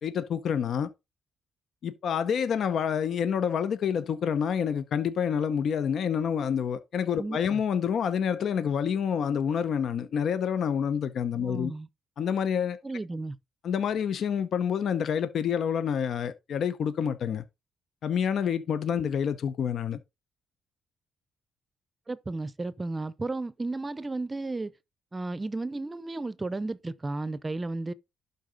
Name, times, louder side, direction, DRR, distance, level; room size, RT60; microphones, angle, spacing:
voice 1, 0.0-0.9 1.8-11.7 12.2-12.8 13.6-17.4 18.0-20.0, left 7 dB, 65° left, 0.7 m, -28 dB
voice 2, 7.2-7.6 11.4-11.9 12.8-13.4 22.1-24.7 25.1-27.9, right 2 dB, 20° right, 0.6 m, -33 dB
11.5 x 4.0 x 3.9 m
cardioid pair, 90°, 0 cm